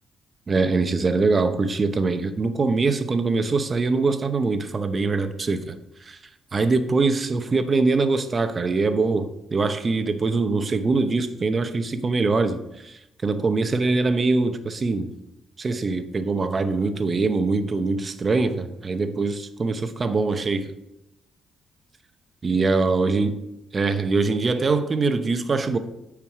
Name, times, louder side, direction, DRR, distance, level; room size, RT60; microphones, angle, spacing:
voice 1, 0.5-5.8 6.1-6.2 6.5-15.1 15.6-20.7 22.4-23.3 23.7-25.8, right 3 dB, 35° right, 9 dB, 0.8 m, -23 dB
9.0 x 4.8 x 4.8 m, 0.87 s
cardioid pair, 90°, 0 cm